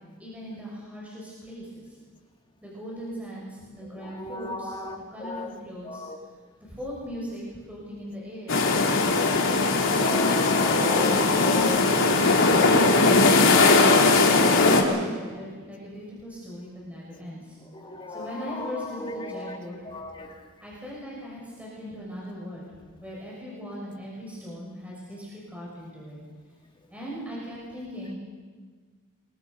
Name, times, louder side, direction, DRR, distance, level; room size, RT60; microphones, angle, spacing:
voice 1, 0.2-1.9 2.6-4.7 5.1-6.0 6.6-8.6 9.0-10.4 11.2-13.7 14.3-17.5 18.1-19.8 20.6-22.7 23.0-26.2 26.9-28.2, equal, 5° right, -5 dB, 6.6 m, -39 dB
voice 2, 3.8-5.6 5.8-6.2 9.7-11.8 17.7-20.5, left 2 dB, 20° left, 2 dB, 2.4 m, -35 dB
sound 1, 8.5-14.8, left 3 dB, 60° left, 3.4 m, -19 dB
28.0 x 23.0 x 5.6 m, 1.5 s
head